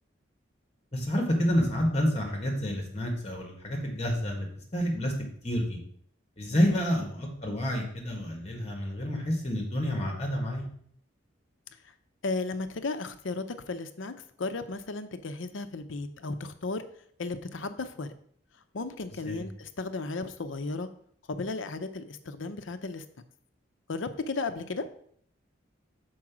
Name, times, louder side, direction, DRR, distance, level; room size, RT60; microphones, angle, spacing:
voice 1, 0.9-4.5 4.7-5.1 5.4-5.8 6.4-10.6 19.3-19.4, equal, 30° left, 1 dB, 1.8 m, -29 dB
voice 2, 12.2-16.8 17.2-18.1 18.7-20.9 21.3-23.0 23.9-24.9, left 3 dB, 80° left, 9 dB, 0.6 m, -34 dB
6.2 x 4.7 x 6.0 m, 0.62 s
head